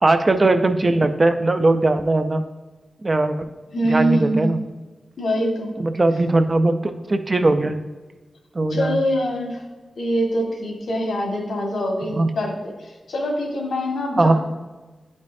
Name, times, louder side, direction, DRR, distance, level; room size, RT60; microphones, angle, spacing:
voice 1, 0.0-2.4 3.0-3.5 3.8-4.6 5.8-7.8 8.5-9.0 12.2-12.3 14.2-14.3, right 2 dB, 30° right, 8 dB, 0.4 m, -19 dB
voice 2, 3.7-4.5 5.2-5.7 8.7-9.6 10.0-12.5 12.8-14.3, equal, 85° left, 0 dB, 1.6 m, -24 dB
10.5 x 5.2 x 2.6 m, 1.2 s
wide cardioid pair, 120°, 0 cm